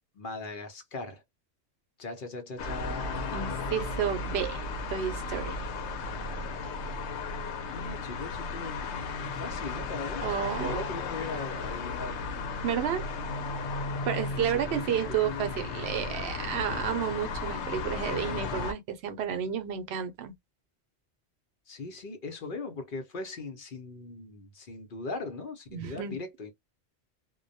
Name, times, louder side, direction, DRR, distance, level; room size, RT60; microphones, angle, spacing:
voice 1, 0.1-1.2 2.0-4.3 7.7-12.2 14.3-16.1 21.7-26.5, left 3 dB, 55° left, 0.8 m, -40 dB
sound 1, 2.6-18.7, left 4 dB, 85° left, 0.9 m, -35 dB
voice 2, 3.3-5.6 10.2-10.8 12.6-13.0 14.0-20.3 25.7-26.2, right 8 dB, 70° right, 0.8 m, -31 dB
2.2 x 2.1 x 2.6 m
omnidirectional pair, 1.1 m